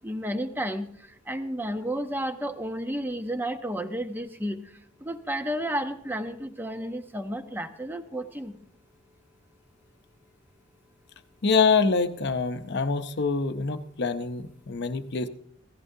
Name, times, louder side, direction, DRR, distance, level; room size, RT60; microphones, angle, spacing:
voice 1, 0.0-0.9 1.3-4.6 5.0-8.6, equal, 10° right, 8 dB, 0.7 m, -32 dB
voice 2, 11.4-15.3, left 4 dB, 55° left, 10 dB, 0.7 m, -25 dB
16.0 x 15.0 x 2.7 m, 0.67 s
head